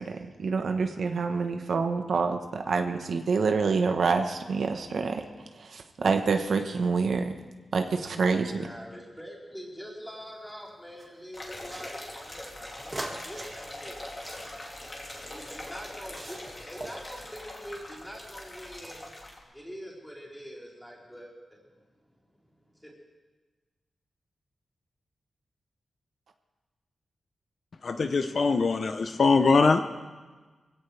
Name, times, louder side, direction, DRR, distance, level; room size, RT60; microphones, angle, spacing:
voice 1, 0.0-5.2 5.6-7.3 7.7-8.7, right 4 dB, 70° right, 5 dB, 1.1 m, -27 dB
voice 2, 8.6-14.6 14.8-14.9 15.2-19.1 19.5-21.3 22.7-22.9, equal, 5° left, -5 dB, 4.2 m, -44 dB
sound 1, 10.1-11.1 11.7-15.6 16.0-16.5 16.8-17.4, right 2 dB, 25° right, 2.1 m, -43 dB
sound 2, 11.3-19.4, left 1 dB, 25° left, 2.7 m, -42 dB
voice 3, 27.8-29.8, left 4 dB, 50° left, 7 dB, 0.7 m, -22 dB
23.0 x 16.5 x 3.4 m, 1.3 s
wide cardioid pair, 155°, 0 cm